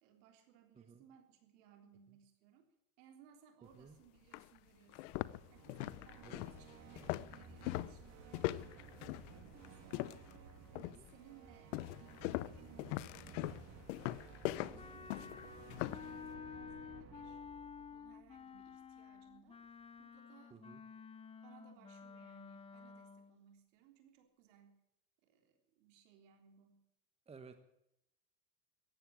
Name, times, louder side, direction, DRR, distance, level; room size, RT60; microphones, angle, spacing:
voice 1, 0.0-2.7 3.0-5.2 5.5-10.0 10.7-13.6 14.2-19.6 20.0-20.6 21.4-24.8 25.2-26.8, right 10 dB, 75° right, 4 dB, 3.6 m, -64 dB
sound 1, 3.7-3.8 4.3-4.5 4.9-10.4 10.8-11.2 11.7-16.1, left 18 dB, 70° left, 0.7 m, -41 dB
sound 2, 5.0-19.0, right 5 dB, 45° right, 2.8 m, -56 dB
voice 2, 10.7-11.0 14.6-14.8 20.5-20.8 27.3-27.6, right 5 dB, 15° right, 8 dB, 1.3 m, -56 dB
Wind instrument woodwind instrument, 14.8-23.4, left 6 dB, 15° left, 0.7 m, -52 dB
14.5 x 8.9 x 10.0 m, 0.79 s
supercardioid pair, 120°, 37 cm